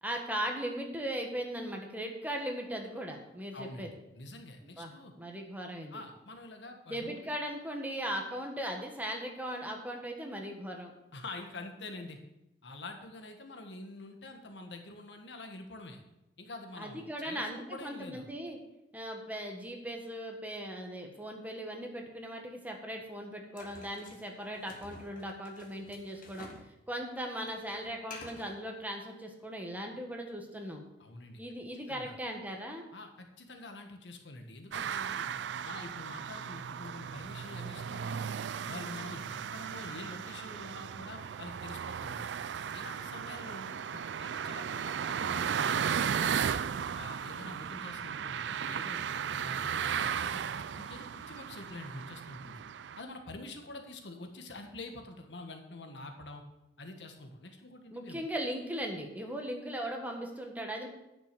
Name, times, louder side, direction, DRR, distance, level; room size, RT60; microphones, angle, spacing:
voice 1, 0.0-3.9 4.8-6.0 6.9-10.9 16.8-18.6 18.9-26.5 26.9-30.8 31.4-32.8 57.9-60.9, equal, 10° right, 2 dB, 1.5 m, -38 dB
voice 2, 3.5-5.1 5.9-7.2 11.1-12.2 12.6-16.0 16.4-18.3 31.0-31.4 31.9-32.2 32.9-35.3 35.6-38.3 38.6-42.3 42.7-46.4 46.9-52.6 53.0-56.4 56.8-58.2, left 2 dB, 85° left, 5 dB, 1.5 m, -46 dB
sound 1, 23.6-26.7 27.0-28.6, left 3 dB, 50° left, 1.8 m, -51 dB
sound 2, 34.7-53.0, right 7 dB, 85° right, 0.4 m, -35 dB
10.5 x 6.1 x 6.7 m, 0.91 s
head